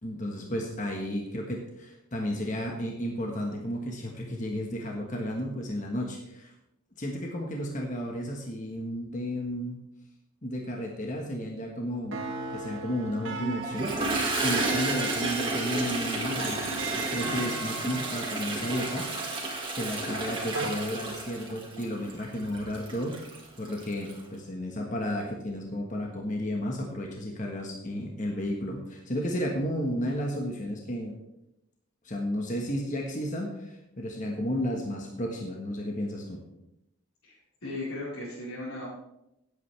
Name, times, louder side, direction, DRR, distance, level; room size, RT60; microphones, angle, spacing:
voice 1, 0.0-6.5 7.0-9.8 10.4-12.2 12.5-14.0 14.4-16.6 16.9-23.2 23.6-31.1 32.0-36.4, equal, 35° left, 0 dB, 1.5 m, -33 dB
sound 1, 12.1-20.7, right 3 dB, 65° right, 1.7 m, -38 dB
Toilet flush, 13.6-24.2, right 2 dB, 25° right, 2.0 m, -32 dB
voice 2, 37.2-38.9, left 2 dB, 75° left, -9 dB, 4.6 m, -37 dB
17.0 x 8.5 x 3.5 m, 0.85 s
head